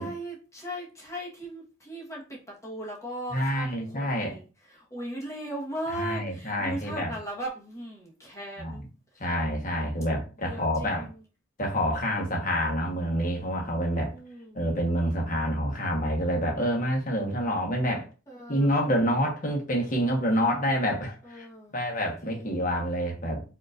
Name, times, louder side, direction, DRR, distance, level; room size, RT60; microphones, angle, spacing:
voice 1, 0.0-8.8 9.1-9.2 10.4-11.2 14.0-14.6 18.3-18.8 21.2-21.7 22.2-22.7, right 1 dB, 15° left, 1.2 m, -38 dB
voice 2, 3.3-4.3 6.0-7.1 8.6-8.8 9.2-11.1 11.6-14.1 14.5-18.1 18.5-21.4 21.7-23.4, equal, 40° left, 1.2 m, -27 dB
5.1 x 2.9 x 2.5 m
head